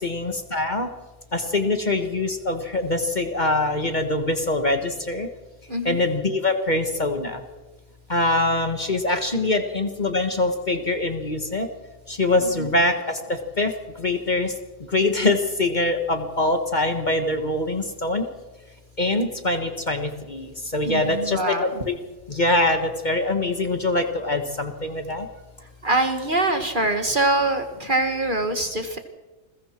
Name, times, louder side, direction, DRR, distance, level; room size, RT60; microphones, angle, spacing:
voice 1, 0.0-0.9 1.3-5.3 5.8-7.4 8.1-11.7 12.1-13.7 14.0-14.5 14.9-18.2 19.0-22.0 22.3-25.3, left 2 dB, 30° left, 6 dB, 1.7 m, -24 dB
voice 2, 5.7-6.0 12.4-12.7 20.8-21.8 25.8-29.0, right 2 dB, 35° right, 6 dB, 1.7 m, -24 dB
29.0 x 21.5 x 4.5 m, 1.2 s
omnidirectional pair, 1.5 m